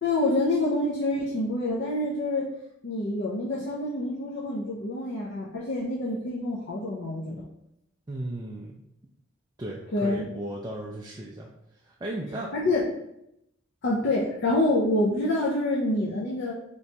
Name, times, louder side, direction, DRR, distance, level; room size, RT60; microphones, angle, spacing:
voice 1, 0.0-2.5 2.8-7.5 9.9-10.2 12.5-12.9 13.8-16.5, left 2 dB, 60° left, -4 dB, 0.5 m, -27 dB
voice 2, 8.1-8.8 9.6-11.5 11.8-12.5, right 1 dB, 20° right, -3 dB, 0.3 m, -35 dB
3.3 x 3.0 x 2.8 m, 0.80 s
head